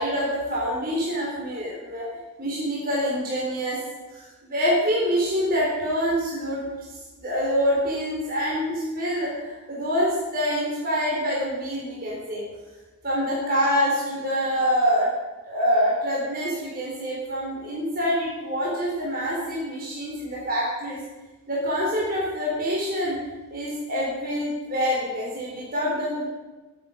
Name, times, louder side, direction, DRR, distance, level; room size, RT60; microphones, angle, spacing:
voice 1, 0.0-2.1 2.4-3.8 4.1-6.9 7.2-12.4 13.0-15.1 15.5-21.0 21.5-23.2 23.5-26.2, equal, 40° right, -6 dB, 4.2 m, -26 dB
21.0 x 8.9 x 5.3 m, 1.2 s
head